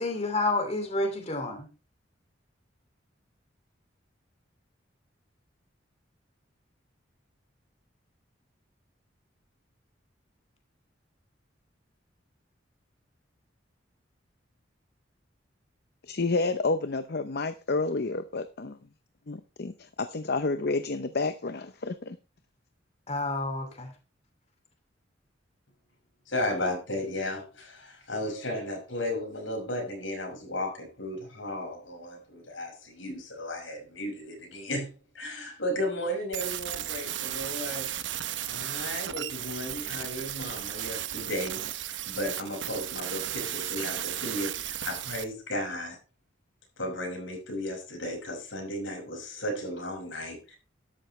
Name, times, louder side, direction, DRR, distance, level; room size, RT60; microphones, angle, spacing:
voice 1, 0.0-1.6 23.1-23.9, left 2 dB, 35° left, 2.7 m, -29 dB
voice 2, 16.1-18.7 19.3-22.2, left 3 dB, 55° left, 0.8 m, -30 dB
voice 3, 26.3-37.9 38.5-46.0 46.8-50.6, left 1 dB, 90° left, 6.0 m, -34 dB
sound 1, 36.3-45.2, right 11 dB, 70° right, 0.9 m, -35 dB
13.0 x 11.5 x 3.3 m
head